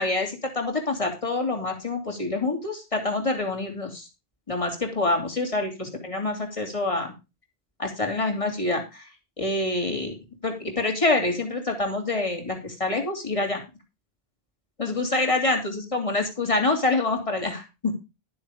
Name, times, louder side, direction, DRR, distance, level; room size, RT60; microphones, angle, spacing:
voice 1, 0.0-4.1 4.5-7.1 7.8-9.0 9.4-10.1 10.4-13.6 14.8-17.9, left 2 dB, 30° left, 2 dB, 3.1 m, -26 dB
12.0 x 7.1 x 5.0 m, 0.27 s
omnidirectional pair, 1.1 m